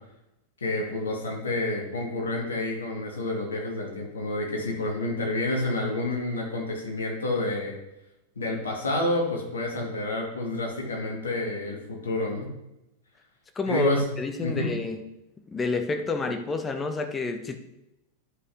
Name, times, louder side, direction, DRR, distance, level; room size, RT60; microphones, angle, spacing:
voice 1, 0.6-7.8 8.4-12.5 13.7-14.1 14.4-14.7, left 2 dB, 70° left, -1 dB, 2.1 m, -29 dB
voice 2, 13.6-15.0 15.5-17.6, left 3 dB, 15° left, 6 dB, 0.9 m, -29 dB
11.0 x 5.5 x 3.6 m, 0.91 s
figure-of-eight pair, 90°, 0 cm